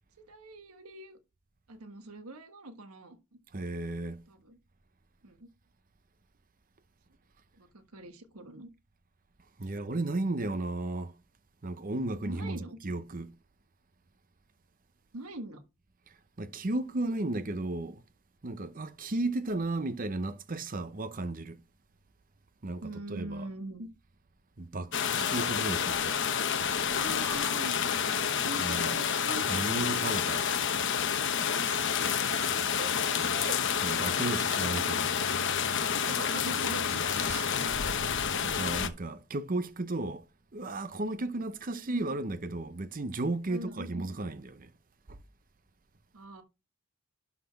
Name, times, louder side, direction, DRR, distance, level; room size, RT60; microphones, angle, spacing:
voice 1, 0.2-1.2 1.7-3.4 4.3-4.6 5.2-5.5 7.5-8.7 9.6-9.7 12.2-12.8 15.1-15.6 22.8-23.9 26.9-29.5 31.5-33.6 36.0-37.5 41.9-42.1 43.5-44.1 46.1-46.4, right 2 dB, 85° right, 1.4 m, -43 dB
voice 2, 3.5-4.2 9.6-11.2 11.6-13.3 16.4-18.0 18.4-21.6 22.6-23.5 24.6-26.3 28.6-29.0 29.5-30.8 33.8-35.3 37.2-38.1 38.4-40.3 40.5-44.7 45.1-45.2, right 2 dB, 40° right, 0.7 m, -34 dB
sound 1, 24.9-38.9, left 7 dB, 55° left, 1.0 m, -29 dB
11.5 x 4.2 x 5.8 m
head